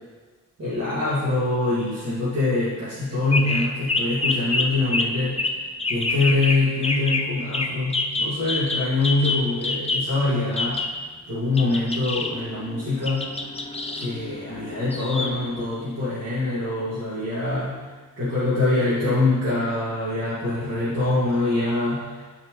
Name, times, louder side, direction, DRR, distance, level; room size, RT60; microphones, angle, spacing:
voice 1, 0.6-5.4 5.9-10.8 11.3-13.3 14.0-17.8 18.2-22.2, left 2 dB, 50° right, -12 dB, 2.3 m, -24 dB
sound 1, 3.3-4.6 4.9-5.0 5.4-5.5 5.8-6.6 6.8-7.2 7.5-7.7 7.9-10.0 10.6-10.9 11.5-15.6, left 3 dB, 20° left, 0.6 m, -26 dB
12.0 x 4.5 x 3.2 m, 1.4 s
wide cardioid pair, 135°, 32 cm